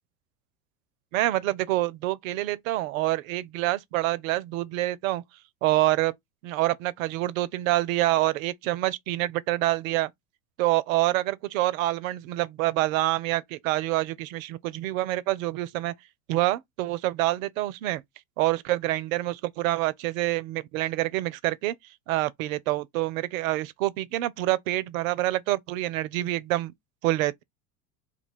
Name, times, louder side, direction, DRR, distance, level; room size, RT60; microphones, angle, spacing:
voice 1, 1.1-5.2 5.6-6.1 6.4-10.1 10.6-15.9 16.3-18.0 18.4-21.7 22.1-26.7 27.0-27.4, right 16 dB, 65° right, 0.6 m, -26 dB
2.8 x 2.2 x 4.1 m
hypercardioid pair, 90°, 44 cm